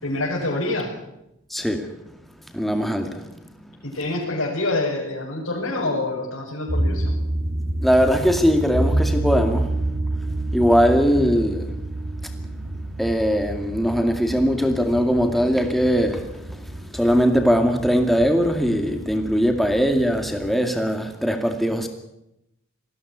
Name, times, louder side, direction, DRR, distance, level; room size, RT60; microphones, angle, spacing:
voice 1, 0.0-0.9 3.8-7.1, left 2 dB, 85° left, 5.9 m, -26 dB
voice 2, 1.5-1.9 2.5-3.3 3.6-3.7 7.8-9.8 10.4-11.8 12.2-12.3 13.0-21.9, equal, ahead, 2.2 m, -21 dB
sound 1, 6.7-20.5, right 1 dB, 50° right, 2.5 m, -28 dB
20.5 x 15.5 x 9.6 m
head